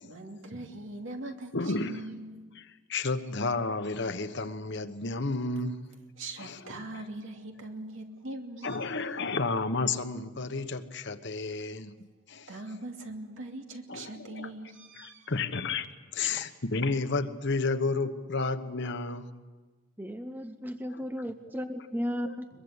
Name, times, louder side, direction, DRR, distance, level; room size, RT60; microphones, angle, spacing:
voice 1, 0.0-2.5 6.2-8.9 12.5-15.3, right 2 dB, 65° right, 3 dB, 2.7 m, -41 dB
voice 2, 1.5-2.0 2.5-5.8 6.4-6.6 6.9-7.0 8.6-11.9 12.3-12.5 13.9-14.5 15.0-15.9 16.1-19.3 20.9-21.0 22.2-22.3, left 3 dB, 60° left, 9 dB, 1.2 m, -31 dB
voice 3, 20.0-22.5, equal, 10° right, 8 dB, 0.7 m, -35 dB
22.5 x 22.0 x 8.2 m, 1.3 s
head